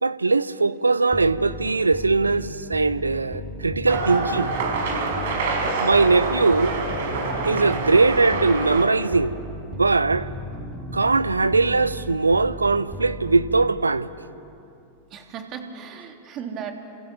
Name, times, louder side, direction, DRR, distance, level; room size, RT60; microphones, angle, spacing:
voice 1, 0.0-4.5 5.8-6.8 7.4-9.4 9.7-10.3 10.9-14.1, right 3 dB, 80° right, 0.8 m, -20 dB
sound 1, 1.1-14.0, equal, 10° right, 3.6 m, -36 dB
sound 2, 3.9-8.9, right 3 dB, 55° right, 5.1 m, -26 dB
voice 2, 15.1-16.7, right 7 dB, 35° right, 3.3 m, -36 dB
29.5 x 27.5 x 7.1 m
figure-of-eight pair, 90°, 0 cm